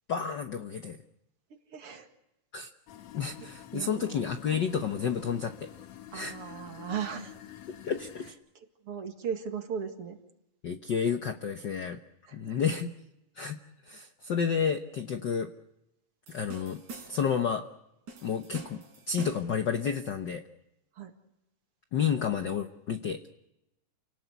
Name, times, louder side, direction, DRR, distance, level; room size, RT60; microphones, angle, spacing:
voice 1, 0.1-1.0 2.5-2.7 3.1-5.7 6.1-6.3 7.8-8.3 10.6-12.0 12.3-12.9 13.4-13.6 13.9-15.5 16.3-16.8 17.1-17.7 18.2-20.4 21.9-23.3, left 7 dB, 85° left, 7 dB, 0.9 m, -30 dB
voice 2, 1.7-2.1 3.7-4.1 6.1-7.4 8.6-10.2 12.3-12.7 20.9-21.1, right 7 dB, 50° right, 5 dB, 2.6 m, -37 dB
sound 1, 2.9-8.3, left 11 dB, 65° left, 2.3 m, -48 dB
sound 2, 16.3-17.4 18.1-19.6, right 3 dB, 75° right, 5.4 m, -46 dB
29.0 x 18.5 x 8.2 m, 0.90 s
omnidirectional pair, 3.5 m